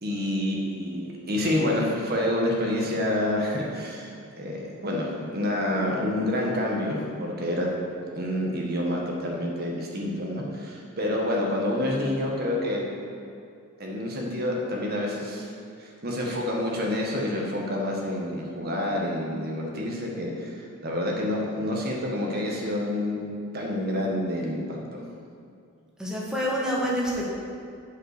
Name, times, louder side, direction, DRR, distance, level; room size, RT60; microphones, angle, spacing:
voice 1, 0.0-4.1 4.4-7.7 8.1-12.8 13.8-15.5 15.8-23.3 23.5-25.0, left 1 dB, 45° right, -1 dB, 1.5 m, -28 dB
voice 2, 26.0-27.2, equal, 5° right, -5 dB, 1.4 m, -27 dB
7.5 x 5.4 x 6.6 m, 2.4 s
head